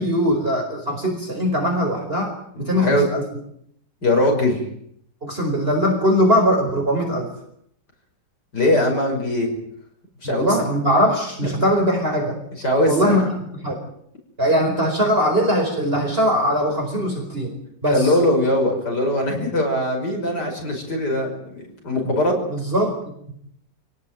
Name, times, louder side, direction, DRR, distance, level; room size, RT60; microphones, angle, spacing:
voice 1, 0.0-2.3 2.6-3.2 5.2-7.3 10.2-12.3 12.8-13.8 14.4-17.5 17.8-18.1 19.3-19.5 22.5-23.0, equal, 30° right, 1 dB, 5.0 m, -21 dB
voice 2, 2.5-3.0 4.0-4.6 8.5-9.5 10.2-10.6 12.6-13.3 17.9-22.4, left 1 dB, 70° left, 2 dB, 6.2 m, -21 dB
28.5 x 18.0 x 9.1 m, 0.71 s
omnidirectional pair, 1.9 m